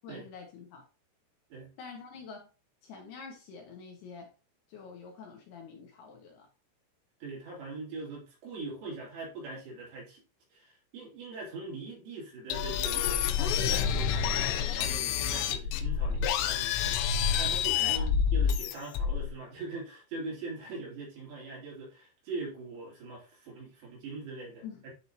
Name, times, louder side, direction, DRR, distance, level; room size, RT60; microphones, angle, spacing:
voice 1, 0.0-0.8 1.8-2.5 2.8-4.3 4.7-6.5 17.8-18.1 24.6-24.9, left 5 dB, 70° left, 2.9 m, -46 dB
voice 2, 7.2-10.2 10.5-24.9, right 3 dB, 65° right, 4.9 m, -42 dB
sound 1, 12.5-19.3, left 8 dB, 90° left, 3.1 m, -28 dB
10.5 x 3.9 x 2.7 m
omnidirectional pair, 5.4 m